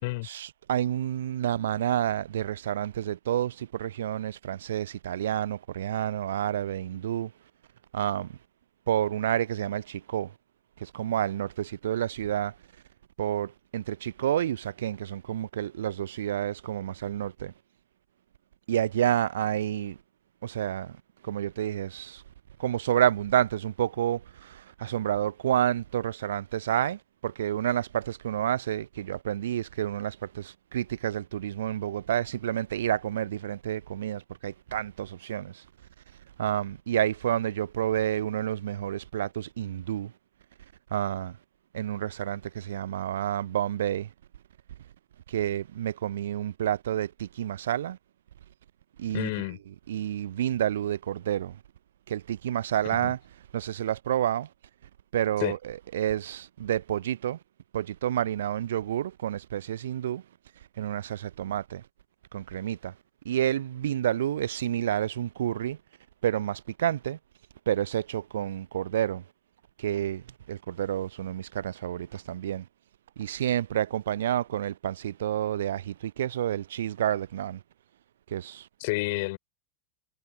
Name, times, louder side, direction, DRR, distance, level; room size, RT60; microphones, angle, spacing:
voice 1, 0.2-7.3 7.9-8.3 8.9-10.3 10.8-12.5 13.2-17.5 18.7-20.0 20.4-20.9 21.2-22.2 22.6-35.6 36.4-40.1 40.9-41.3 41.7-44.1 45.3-48.0 49.0-49.3 49.9-51.6 52.1-53.2 53.5-54.5 55.1-57.4 57.7-60.2 60.8-61.8 62.3-62.9 63.3-65.8 66.2-67.2 67.7-69.2 69.8-70.2 70.5-72.6 73.2-77.6 78.3-78.7, right 11 dB, 60° right, 0.6 m, -29 dB
voice 2, 49.1-49.6 52.8-53.1 55.4-55.5 78.8-79.4, left 23 dB, 50° left, 4.9 m, -30 dB
figure-of-eight pair, 90°, 0 cm